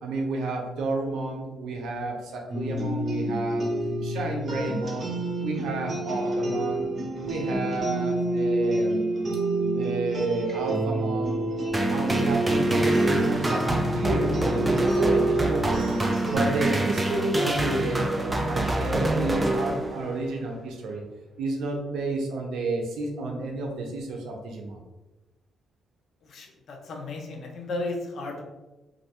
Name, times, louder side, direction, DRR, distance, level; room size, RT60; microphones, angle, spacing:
voice 1, 0.0-3.7 4.0-5.1 5.4-6.8 7.2-9.0 9.7-11.4 11.9-15.9 16.3-21.0 21.4-24.8, right 2 dB, 80° right, 1 dB, 0.5 m, -31 dB
sound 1, 2.5-16.4, right 1 dB, 35° right, 0.8 m, -28 dB
sound 2, 11.7-20.2, right 1 dB, 15° right, 0.3 m, -26 dB
voice 2, 26.3-28.4, left 2 dB, 55° left, 1 dB, 0.6 m, -34 dB
3.0 x 2.6 x 2.9 m, 1.1 s
cardioid pair, 125°, 0 cm